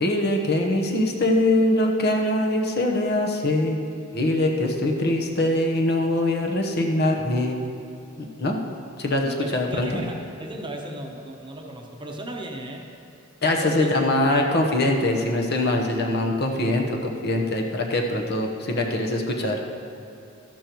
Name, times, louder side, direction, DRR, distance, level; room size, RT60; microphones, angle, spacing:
voice 1, 0.0-3.8 4.1-7.6 8.2-8.6 9.0-10.0 13.4-19.6, left 1 dB, 50° left, 1 dB, 1.0 m, -23 dB
voice 2, 9.2-12.9 13.6-14.0 16.5-16.6, right 1 dB, 20° right, 1 dB, 0.9 m, -35 dB
13.0 x 12.0 x 3.1 m, 2.7 s
head